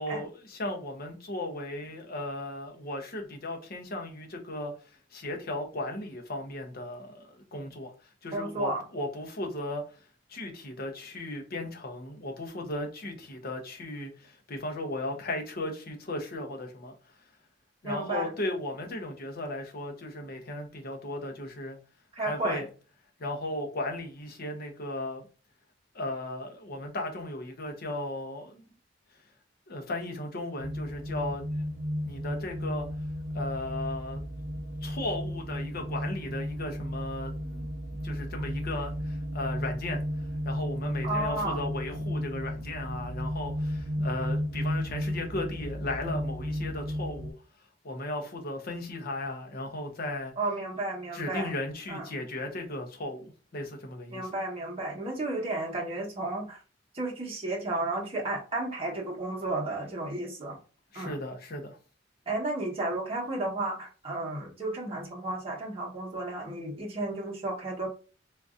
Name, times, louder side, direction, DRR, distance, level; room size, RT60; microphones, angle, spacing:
voice 1, 0.0-7.9 8.2-10.0 10.3-16.9 17.8-21.8 22.2-22.7 23.2-25.2 25.9-28.6 29.7-31.7 32.0-32.9 33.3-34.2 34.8-37.7 38.0-40.0 40.4-47.3 47.8-50.3 51.1-54.3 60.9-61.8, left 1 dB, 55° left, 0.8 m, -36 dB
voice 2, 8.3-8.8 17.8-18.3 22.2-22.6 41.0-41.6 50.4-51.5 51.9-52.0 54.1-56.6 56.9-60.6 60.9-61.2 62.3-67.9, right 2 dB, 30° right, 1.1 m, -33 dB
sound 1, 30.6-47.3, equal, 75° right, 0.6 m, -34 dB
3.7 x 2.7 x 2.4 m
head